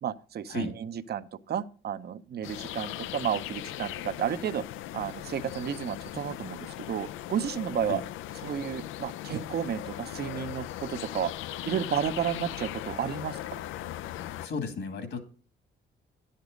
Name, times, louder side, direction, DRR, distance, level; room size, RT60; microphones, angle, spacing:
voice 1, 0.0-4.6 4.9-8.0 8.4-11.3 11.6-13.4, right 8 dB, 55° right, 12 dB, 0.7 m, -32 dB
sound 1, 2.4-14.5, left 13 dB, 85° left, 0.4 m, -39 dB
voice 2, 14.4-15.2, left 4 dB, 70° left, 7 dB, 2.2 m, -34 dB
10.5 x 6.7 x 5.1 m, 0.40 s
cardioid pair, 90°, 20 cm